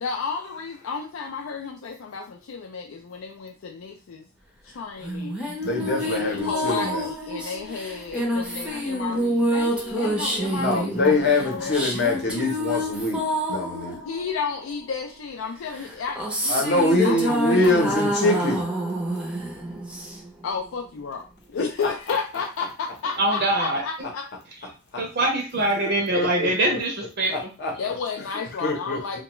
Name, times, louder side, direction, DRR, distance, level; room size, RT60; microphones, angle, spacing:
voice 1, 0.0-4.2 4.6-5.4 6.0-11.9 14.0-18.0 20.4-21.2 21.5-24.2 27.8-29.2, left 5 dB, 80° left, 2 dB, 0.4 m, -32 dB
sound 1, 5.0-14.9 15.7-20.4, equal, 5° right, 0.5 m, -27 dB
voice 2, 5.6-7.1 10.6-13.2 13.5-14.0 16.5-18.6 26.2-26.5 27.3-27.7 28.6-29.2, left 2 dB, 55° left, 1 dB, 0.8 m, -24 dB
voice 3, 23.2-23.8 25.0-27.5, right 1 dB, 55° right, 1 dB, 0.6 m, -23 dB
2.3 x 2.2 x 3.0 m, 0.32 s
head